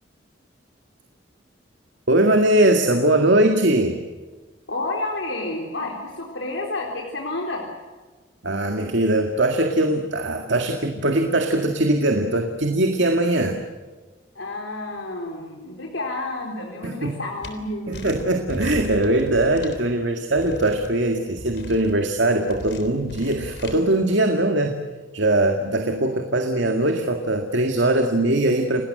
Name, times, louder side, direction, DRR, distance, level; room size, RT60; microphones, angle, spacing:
voice 1, 2.1-4.0 8.4-13.6 16.8-17.2 17.9-24.8 25.1-28.8, right 1 dB, 75° right, 4 dB, 2.0 m, -21 dB
voice 2, 4.7-7.6 14.4-18.2, left 2 dB, 80° left, 0 dB, 3.8 m, -30 dB
sound 1, 17.4-17.5 17.9-19.8 20.4-20.9 21.4-21.9 22.5-23.8, left 1 dB, 60° left, 3.6 m, -36 dB
30.0 x 19.0 x 7.8 m, 1.3 s
head